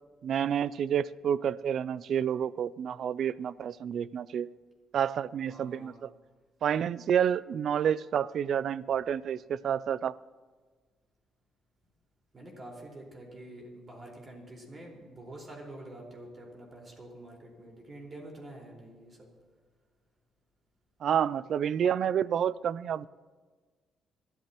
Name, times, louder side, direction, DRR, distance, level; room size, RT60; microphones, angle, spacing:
voice 1, 0.2-4.5 4.9-6.1 6.6-10.2 21.0-23.1, right 8 dB, 65° right, 20 dB, 0.4 m, -29 dB
voice 2, 5.5-6.0 12.3-19.3, right 1 dB, 35° right, -1 dB, 4.6 m, -47 dB
25.5 x 13.5 x 3.0 m, 1.4 s
cardioid pair, 90°, 0 cm